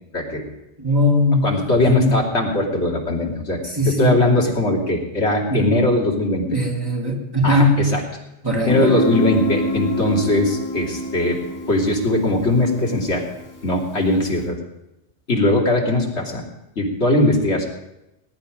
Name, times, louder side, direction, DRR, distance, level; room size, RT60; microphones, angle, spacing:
voice 1, 0.1-0.5 1.4-3.6 3.8-6.6 7.4-8.0 8.6-11.4 11.7-13.2 13.6-14.6 15.3-16.4 16.8-17.6, left 1 dB, 90° left, -1 dB, 3.1 m, -20 dB
voice 2, 0.8-2.2 3.8-4.2 5.5-5.7 6.5-7.9 8.4-9.0, left 1 dB, 20° right, -2 dB, 3.0 m, -19 dB
Guitar, 8.7-14.3, equal, 15° left, 1.7 m, -26 dB
19.5 x 11.5 x 5.2 m, 0.91 s
omnidirectional pair, 1.1 m